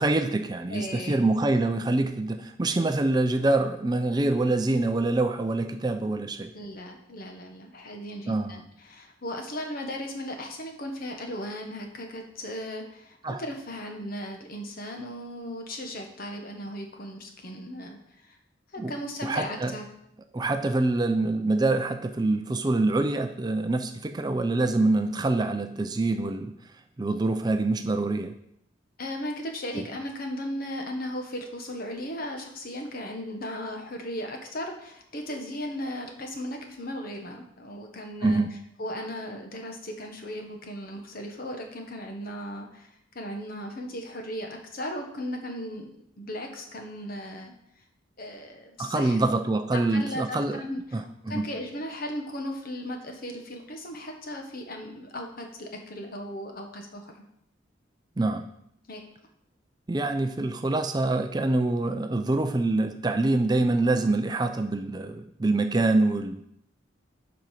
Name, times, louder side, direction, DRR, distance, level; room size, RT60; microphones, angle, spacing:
voice 1, 0.0-6.5 8.3-8.5 13.2-13.4 18.8-19.0 19.2-19.8 20.3-26.5 27.0-28.3 29.8-29.9 38.2-38.5 48.8-50.6 50.9-51.5 58.2-58.5 59.9-66.4, right 2 dB, 20° right, 7 dB, 0.4 m, -25 dB
voice 2, 0.7-1.2 6.5-18.4 18.7-19.8 29.0-38.4 38.8-45.9 46.2-47.5 48.2-49.2 49.9-57.1 58.9-59.0, equal, 50° left, 3 dB, 1.3 m, -36 dB
7.7 x 5.2 x 5.8 m, 0.74 s
head